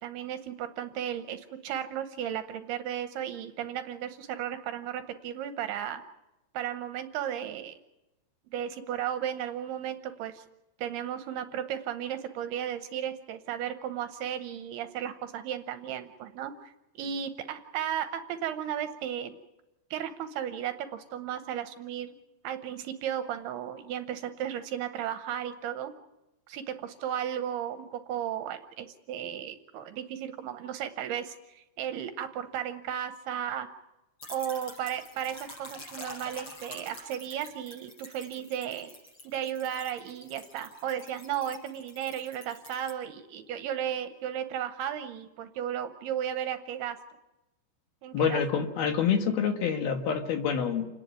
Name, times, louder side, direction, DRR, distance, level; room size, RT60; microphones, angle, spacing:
voice 1, 0.0-6.0 6.5-7.7 8.5-10.4 10.8-16.7 17.0-19.4 19.9-22.2 22.4-25.9 26.5-33.7 34.3-38.9 39.2-47.0 48.0-48.4, right 10 dB, 75° right, 8 dB, 2.6 m, -35 dB
sound 1, 34.2-42.9, left 1 dB, 30° left, 6.4 m, -47 dB
voice 2, 48.1-50.9, left 7 dB, 65° left, 5 dB, 3.2 m, -27 dB
28.5 x 10.5 x 9.5 m, 0.98 s
omnidirectional pair, 5.1 m